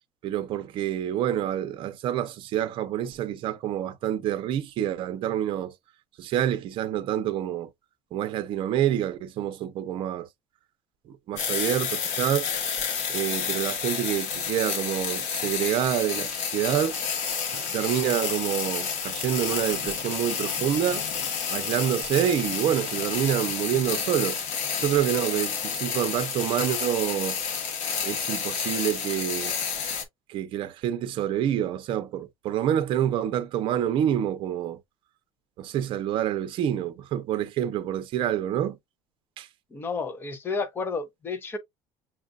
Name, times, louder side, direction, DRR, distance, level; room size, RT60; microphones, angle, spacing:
voice 1, 0.2-5.7 6.2-7.7 8.1-10.3 11.1-12.5 13.1-16.9 17.5-21.0 21.5-24.4 24.8-27.4 28.0-29.6 30.3-34.8 35.6-38.8 39.4-39.5, right 11 dB, 50° right, 0.7 m, -27 dB
sound 1, 11.4-30.0, left 6 dB, 65° left, 1.4 m, -30 dB
voice 2, 39.7-41.6, left 4 dB, 20° left, 0.8 m, -31 dB
7.2 x 2.5 x 2.3 m
cardioid pair, 150°, 11 cm